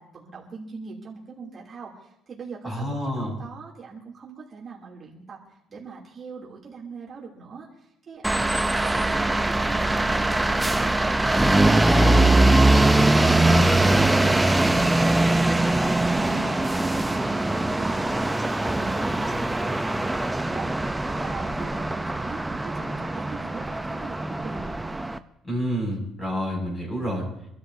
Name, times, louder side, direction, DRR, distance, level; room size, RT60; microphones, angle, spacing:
voice 1, 0.0-2.9 3.2-9.3 9.5-24.6, right 5 dB, 35° right, -4 dB, 3.0 m, -42 dB
voice 2, 2.6-3.3 25.4-27.3, equal, 20° left, -1 dB, 6.2 m, -28 dB
sound 1, 8.2-25.2, right 2 dB, 10° right, 0.6 m, -22 dB
26.5 x 12.5 x 2.8 m, 0.78 s
cardioid pair, 125°, 0 cm